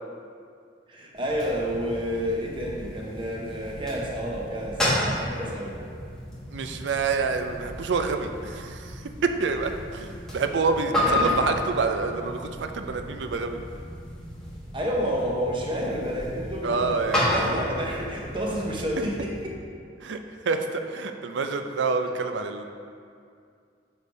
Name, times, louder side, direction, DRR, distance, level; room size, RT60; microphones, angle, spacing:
voice 1, 0.9-5.8 11.0-11.4 14.7-19.5, equal, 30° right, -2 dB, 0.9 m, -30 dB
sound 1, 1.1-19.5, left 1 dB, 5° left, 1.2 m, -32 dB
voice 2, 6.5-13.6 16.6-17.4 20.0-20.2 20.4-22.6, right 4 dB, 75° right, 6 dB, 0.4 m, -27 dB
6.4 x 3.4 x 5.1 m, 2.3 s
head